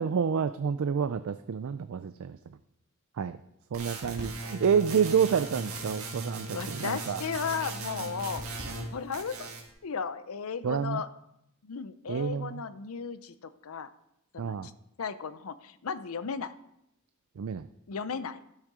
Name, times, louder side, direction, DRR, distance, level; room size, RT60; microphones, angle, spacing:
voice 1, 0.0-2.4 3.2-3.4 3.7-7.2 10.6-11.0 12.1-12.6 14.4-14.7 17.4-17.7, right 7 dB, 70° right, 12 dB, 0.4 m, -28 dB
sound 1, 3.7-8.9 9.1-9.7, right 2 dB, 90° right, 1.8 m, -38 dB
voice 2, 4.1-4.4 6.5-8.4 8.9-9.5 9.8-11.1 11.6-13.9 14.3-14.7 15.0-16.6 17.9-18.4, left 5 dB, 90° left, 14 dB, 0.6 m, -35 dB
12.0 x 6.5 x 4.9 m, 0.81 s
head